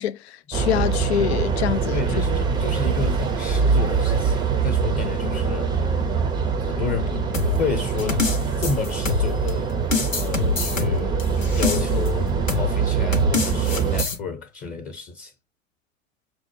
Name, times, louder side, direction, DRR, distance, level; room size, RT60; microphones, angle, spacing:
voice 1, 0.0-2.0, left 10 dB, 60° left, 0.5 m, -25 dB
sound 1, 0.5-14.0, right 5 dB, 10° right, 0.6 m, -23 dB
voice 2, 1.9-6.2 6.7-8.3 8.6-9.7 10.1-15.3, left 5 dB, 25° left, 0.9 m, -31 dB
sound 2, 7.3-9.5 9.9-12.1 12.5-12.7 13.1-14.2, left 5 dB, 85° left, 0.8 m, -25 dB
6.0 x 2.1 x 3.0 m
figure-of-eight pair, 85°, 38 cm